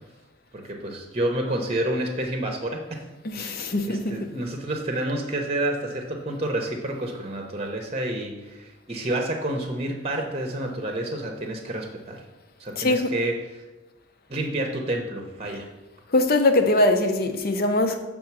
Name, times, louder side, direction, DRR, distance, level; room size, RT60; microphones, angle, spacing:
voice 1, 0.5-3.0 3.3-12.2 12.6-13.6 14.3-15.7, right 1 dB, 30° right, 0.8 m, -29 dB
voice 2, 3.2-4.3 4.9-5.0 12.8-13.1 15.5-15.6 16.1-18.0, left 2 dB, 45° left, 0.7 m, -22 dB
6.9 x 3.7 x 6.1 m
head